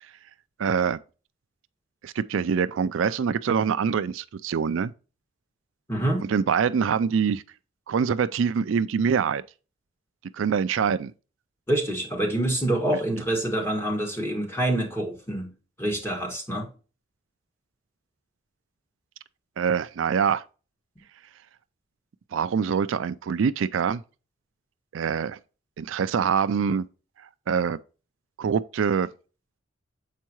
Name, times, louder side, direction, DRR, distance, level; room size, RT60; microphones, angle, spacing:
voice 1, 0.6-1.0 2.0-4.9 6.3-7.4 7.9-9.4 10.3-11.1 19.6-20.4 22.3-24.0 24.9-25.4 25.8-26.8 27.5-27.8 28.4-29.1, right 6 dB, 75° right, 0.4 m, -24 dB
voice 2, 5.9-6.3 11.7-15.5 15.8-16.7, right 1 dB, 10° left, 1.8 m, -26 dB
7.4 x 4.6 x 3.0 m
head